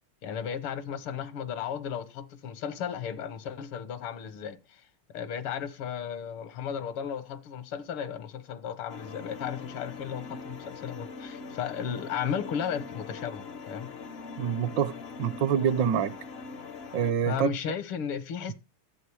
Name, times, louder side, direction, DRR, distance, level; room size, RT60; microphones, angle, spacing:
voice 1, 0.2-4.8 5.1-13.9 17.3-18.5, left 8 dB, 85° left, 2.0 m, -35 dB
sound 1, 8.9-17.1, left 4 dB, 65° left, 0.6 m, -42 dB
voice 2, 14.4-14.9 15.2-16.1 16.9-17.5, right 8 dB, 70° right, 1.3 m, -26 dB
13.0 x 7.5 x 4.8 m
omnidirectional pair, 2.3 m